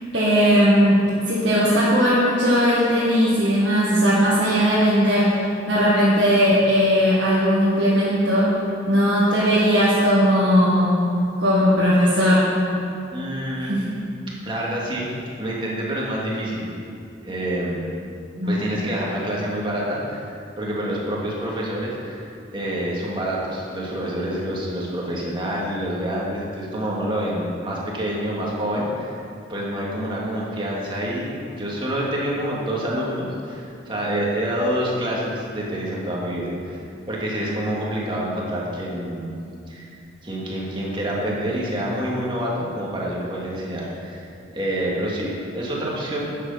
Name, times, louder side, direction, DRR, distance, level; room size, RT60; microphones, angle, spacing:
voice 1, 0.1-5.4 5.7-8.6 8.9-11.0 11.4-12.4 13.7-13.9 18.4-18.6, equal, 65° right, -8 dB, 1.8 m, -18 dB
voice 2, 13.1-13.8 14.4-15.1 15.4-16.7 17.2-17.9 18.4-20.3 20.6-29.2 29.5-36.8 37.1-39.4 39.7-39.9 40.2-46.3, equal, 25° right, -4 dB, 2.1 m, -27 dB
11.5 x 8.1 x 5.6 m, 2.5 s
head